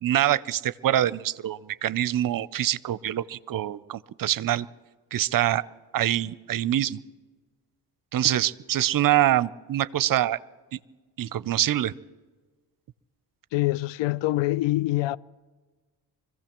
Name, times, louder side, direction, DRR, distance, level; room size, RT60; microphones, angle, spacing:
voice 1, 0.0-4.7 5.1-5.6 5.9-7.0 8.1-10.4 10.7-10.8 11.2-11.9, right 12 dB, 45° right, 0.6 m, -25 dB
voice 2, 13.5-15.2, left 18 dB, 70° left, 0.6 m, -25 dB
25.5 x 15.5 x 3.1 m
hypercardioid pair, 45°, 46 cm